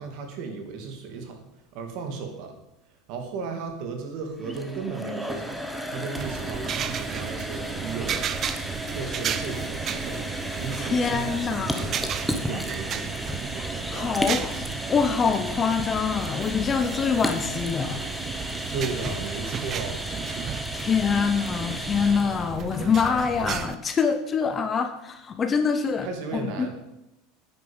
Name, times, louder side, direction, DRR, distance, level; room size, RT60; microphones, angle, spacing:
voice 1, 0.0-1.4 1.7-2.5 3.1-5.6 5.9-8.6 8.9-10.2 10.6-12.1 12.4-13.3 18.7-20.1 26.0-26.7, right 5 dB, 50° right, 5 dB, 2.6 m, -35 dB
sound 1, 4.3-22.5, equal, ahead, 1.1 m, -34 dB
sound 2, 6.1-23.8, right 8 dB, 30° right, 0.7 m, -34 dB
voice 2, 10.8-11.9 13.9-18.0 20.7-26.1 26.3-26.7, left 6 dB, 20° left, 8 dB, 0.9 m, -25 dB
9.6 x 9.6 x 7.3 m, 0.89 s
supercardioid pair, 160°, 0 cm